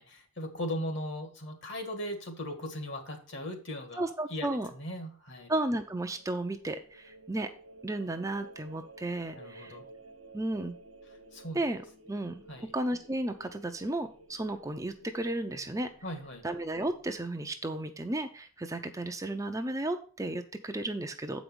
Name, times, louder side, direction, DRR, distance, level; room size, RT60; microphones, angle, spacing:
voice 1, 0.0-4.0 4.3-5.5 9.3-9.9 11.3-11.6 12.5-12.7 16.0-16.4, equal, 55° left, 5 dB, 1.8 m, -38 dB
voice 2, 4.0-4.7 5.5-7.5 7.8-9.8 10.3-10.8 11.5-11.8 12.1-12.4 12.7-15.9 16.4-21.4, right 1 dB, 15° right, 6 dB, 0.5 m, -33 dB
sound 1, 5.3-17.3, right 2 dB, 70° right, 1.2 m, -54 dB
7.9 x 5.1 x 6.1 m, 0.42 s
head